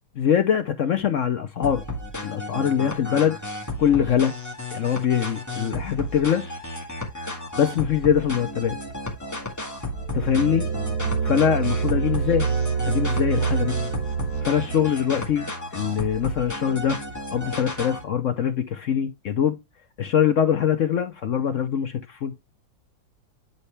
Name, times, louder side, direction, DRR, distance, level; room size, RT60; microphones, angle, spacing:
voice 1, 0.2-1.8 2.2-3.4 3.8-4.3 4.7-6.4 7.6-8.8 10.1-10.7 11.2-12.4 12.8-13.8 14.4-15.5 15.7-17.0 17.3-19.5 20.0-22.3, left 8 dB, 65° left, 0.7 m, -23 dB
sound 1, 1.6-18.0, left 1 dB, 10° left, 1.6 m, -33 dB
sound 2, 9.8-15.0, right 6 dB, 80° right, 5.5 m, -26 dB
9.1 x 4.3 x 3.3 m
omnidirectional pair, 2.1 m